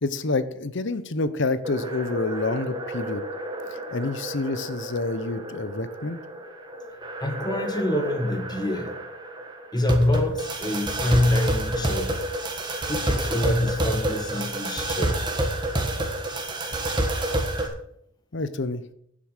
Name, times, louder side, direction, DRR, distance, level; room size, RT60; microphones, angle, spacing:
voice 1, 0.0-3.2 3.7-6.2 17.0-17.1 18.3-18.8, left 3 dB, 55° left, 14 dB, 0.8 m, -28 dB
sound 1, 1.6-17.7, right 1 dB, 20° right, 1.5 m, -29 dB
voice 2, 7.2-9.0 9.7-12.2 12.9-15.2, left 1 dB, 20° left, 5 dB, 1.6 m, -25 dB
9.6 x 7.7 x 6.6 m, 0.71 s
head